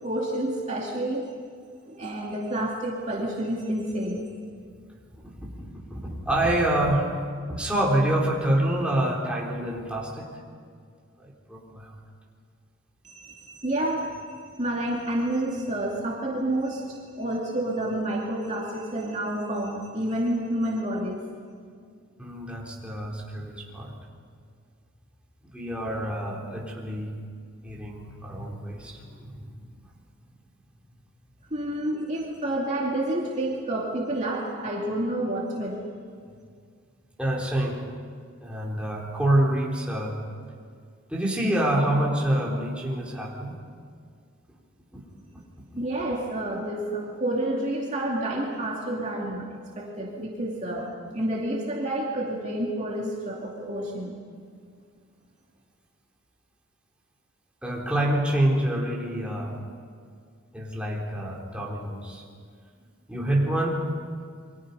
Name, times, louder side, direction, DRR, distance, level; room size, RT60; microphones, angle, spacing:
voice 1, 0.0-1.3 1.9-4.2 13.0-21.2 31.5-35.8 45.8-54.1, right 1 dB, 35° right, -3 dB, 2.5 m, -29 dB
voice 2, 5.2-7.1 7.5-10.3 11.2-11.9 22.2-23.9 25.5-27.1 27.6-29.6 37.2-37.8 38.4-40.2 41.1-43.5 44.9-45.0 57.6-59.5 60.5-62.2 63.1-63.9, right 1 dB, 5° right, -3 dB, 3.8 m, -27 dB
29.0 x 24.0 x 5.5 m, 2.1 s
head